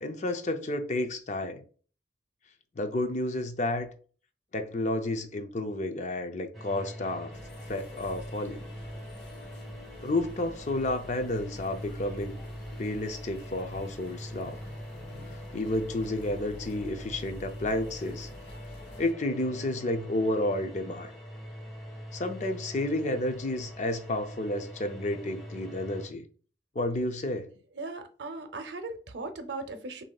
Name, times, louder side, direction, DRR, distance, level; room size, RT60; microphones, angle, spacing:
voice 1, 0.0-1.6 2.8-3.9 4.5-7.4 7.7-8.6 10.0-12.4 12.8-14.6 15.5-18.3 19.0-21.1 22.1-26.3 26.8-27.5, left 1 dB, 45° left, 0.5 m, -31 dB
sound 1, 6.5-26.1, equal, ahead, 1.2 m, -43 dB
sound 2, 7.3-19.1, left 1 dB, 75° left, 0.9 m, -48 dB
voice 2, 27.7-30.0, right 3 dB, 75° right, 0.6 m, -38 dB
6.1 x 2.7 x 2.3 m
head